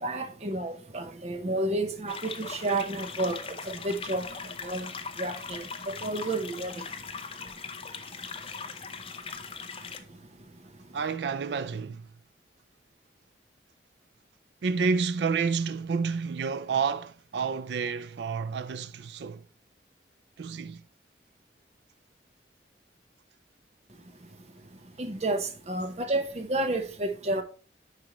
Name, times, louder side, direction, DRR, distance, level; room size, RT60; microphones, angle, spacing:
voice 1, 0.0-4.3 4.6-4.9 5.2-6.7 25.0-27.4, right 2 dB, 40° right, 0.9 m, -31 dB
sound 1, 2.1-10.0, left 5 dB, 30° left, 0.6 m, -40 dB
voice 2, 10.9-12.1 14.6-19.4 20.4-20.8, right 5 dB, 75° right, 0.4 m, -29 dB
9.9 x 4.7 x 3.0 m
head